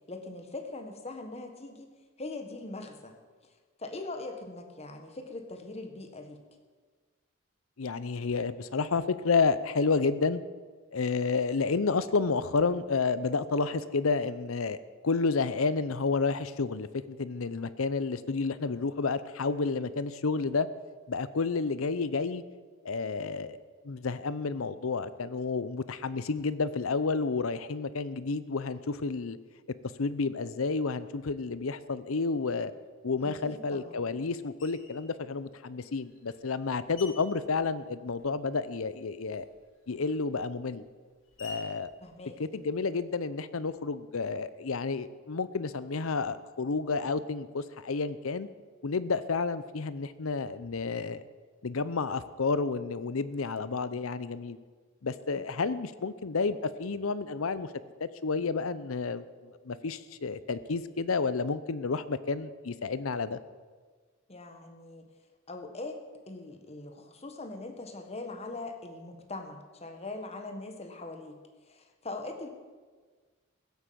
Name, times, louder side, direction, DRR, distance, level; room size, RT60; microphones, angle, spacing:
voice 1, 0.1-1.9 2.2-3.2 3.8-6.4 33.2-33.9 42.0-42.4 55.4-55.5 64.3-65.1 65.5-66.0 66.3-71.4 71.7-72.5, left 2 dB, 30° left, 5 dB, 1.5 m, -41 dB
voice 2, 7.8-10.4 10.9-20.7 21.1-22.4 22.8-23.6 23.8-29.4 30.0-32.7 33.0-39.5 39.9-40.9 41.4-41.9 42.4-48.5 48.8-51.2 51.6-54.6 55.0-57.7 58.0-59.2 59.6-63.4, left 4 dB, 90° left, 15 dB, 0.7 m, -30 dB
Screech, 34.6-35.1 35.8-38.5 38.8-43.1, left 3 dB, 65° left, 3.0 m, -52 dB
16.0 x 8.3 x 7.7 m, 1.5 s
head